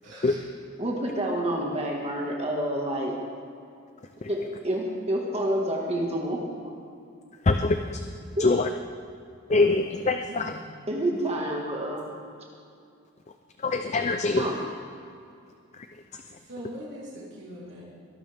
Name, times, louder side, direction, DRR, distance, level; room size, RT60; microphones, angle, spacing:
voice 1, 0.0-0.4 10.3-10.5 16.5-17.8, equal, 60° right, -6 dB, 3.3 m, -41 dB
voice 2, 0.8-3.1 4.3-6.7 8.4-8.5 10.9-12.1 14.4-14.6, right 1 dB, 30° right, -1 dB, 1.8 m, -28 dB
voice 3, 7.4-8.0 8.4-8.7 9.5-10.6 13.6-14.5 15.7-15.9 16.1-16.2, left 3 dB, 35° left, 7 dB, 0.5 m, -24 dB
23.0 x 12.0 x 3.5 m, 2.5 s
head